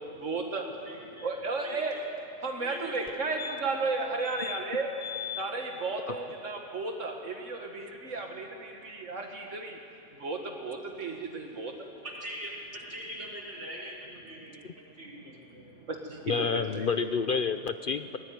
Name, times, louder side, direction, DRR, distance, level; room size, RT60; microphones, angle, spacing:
voice 1, 0.2-0.6 1.2-2.0 2.4-4.9 5.4-9.8 10.2-11.7 16.1-17.1, right 3 dB, 80° right, 2 dB, 2.1 m, -34 dB
voice 2, 0.8-1.3 1.6-2.1 2.6-3.2 12.0-15.6, equal, 65° right, -3 dB, 5.1 m, -42 dB
sound 1, 3.1-3.2 3.4-3.9 4.2-4.6 5.0-5.4 7.8-7.9 8.1-8.2, left 9 dB, 35° left, 1.2 m, -39 dB
voice 3, 16.3-18.2, left 5 dB, 50° left, 10 dB, 0.7 m, -29 dB
23.0 x 18.0 x 9.3 m, 2.8 s
omnidirectional pair, 1.3 m